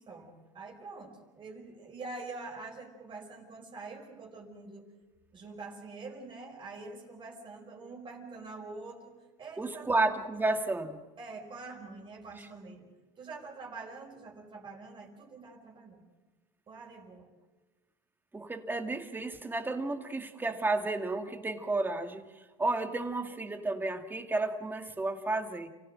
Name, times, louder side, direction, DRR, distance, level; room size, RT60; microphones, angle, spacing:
voice 1, 0.1-4.9 5.3-9.9 11.2-12.9 13.2-16.0 16.7-17.3, right 3 dB, 30° right, 1 dB, 4.9 m, -45 dB
voice 2, 9.6-11.0 12.4-12.5 18.3-25.7, right 2 dB, 10° right, 6 dB, 2.2 m, -32 dB
29.5 x 16.0 x 7.6 m, 1.3 s
supercardioid pair, 115°, 16 cm